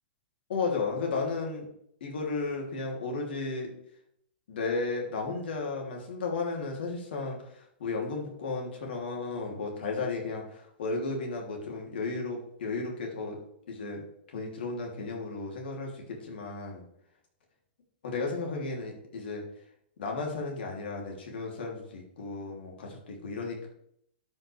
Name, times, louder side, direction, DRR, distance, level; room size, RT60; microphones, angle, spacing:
voice 1, 0.5-1.7 2.0-3.7 4.5-13.4 13.7-14.0 14.3-16.9 18.0-19.4 20.0-23.7, left 3 dB, 70° left, 0 dB, 2.9 m, -34 dB
12.5 x 5.8 x 3.3 m, 0.72 s
hypercardioid pair, 120°, 6 cm